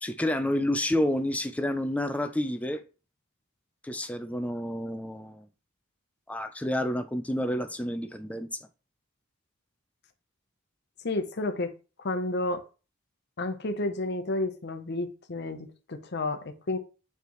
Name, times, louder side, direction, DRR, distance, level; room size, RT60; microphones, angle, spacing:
voice 1, 0.0-2.8 3.8-5.5 6.3-8.7, left 1 dB, 5° left, 0.4 m, -29 dB
voice 2, 11.0-11.7 12.0-12.6 13.4-16.8, left 2 dB, 55° left, 0.8 m, -31 dB
9.4 x 3.4 x 3.1 m
head